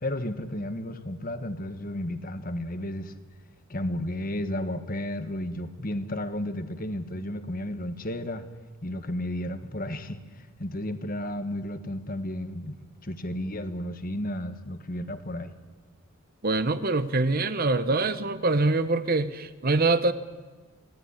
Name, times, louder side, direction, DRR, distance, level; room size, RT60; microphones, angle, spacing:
voice 1, 0.0-3.1 3.7-8.5 8.8-10.2 10.6-15.5, left 1 dB, 40° left, 9 dB, 1.5 m, -33 dB
voice 2, 16.4-20.1, right 3 dB, 40° right, 12 dB, 1.0 m, -24 dB
25.5 x 18.0 x 9.9 m, 1.3 s
head